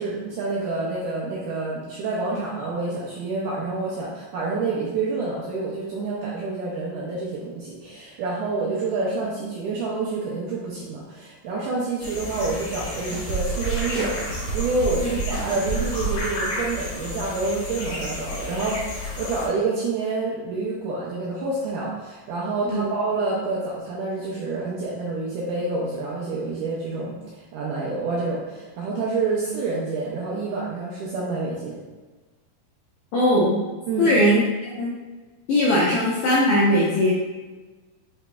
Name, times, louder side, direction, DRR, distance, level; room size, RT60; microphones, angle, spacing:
voice 1, 0.0-14.3 14.5-27.2 27.5-31.8 33.9-34.1, right 3 dB, 80° right, -5 dB, 1.9 m, -28 dB
sound 1, 12.0-19.5, left 2 dB, 65° left, 2.2 m, -32 dB
sound 2, 13.0-16.7, right 5 dB, 60° right, 1.7 m, -29 dB
voice 2, 33.1-33.6 34.0-34.4 34.8-34.9 35.5-37.1, left 1 dB, 80° left, -7 dB, 1.7 m, -19 dB
5.8 x 3.0 x 2.2 m, 1.3 s
omnidirectional pair, 4.3 m